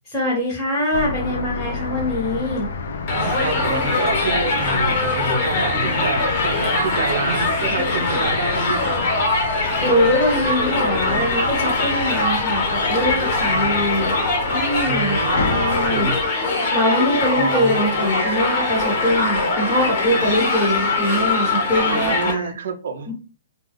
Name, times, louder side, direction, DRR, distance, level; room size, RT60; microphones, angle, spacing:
voice 1, 0.1-2.7 9.8-14.1 14.5-16.1 16.7-22.5 23.1-23.2, equal, 10° left, 1.4 m, -23 dB
sound 1, 0.9-16.3, left 4 dB, 75° left, 0.4 m, -30 dB
Crowd, 3.1-22.3, left 2 dB, 45° left, 1.1 m, -22 dB
voice 2, 3.4-8.9 13.5-14.0 14.9-16.2 17.4-18.0 21.7-23.1, right 5 dB, 70° right, 0.5 m, -28 dB
2.3 x 2.2 x 3.3 m
hypercardioid pair, 145°, 0 cm